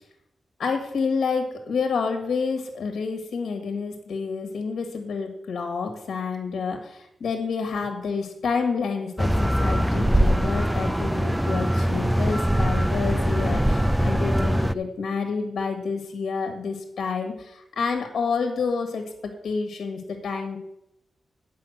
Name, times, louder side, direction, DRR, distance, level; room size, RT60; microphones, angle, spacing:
voice 1, 0.6-19.0 19.4-20.6, left 5 dB, 80° left, 4 dB, 1.6 m, -29 dB
sound 1, 9.2-14.7, equal, 5° right, 0.4 m, -22 dB
8.7 x 5.7 x 7.8 m, 0.82 s
cardioid pair, 80°, 0 cm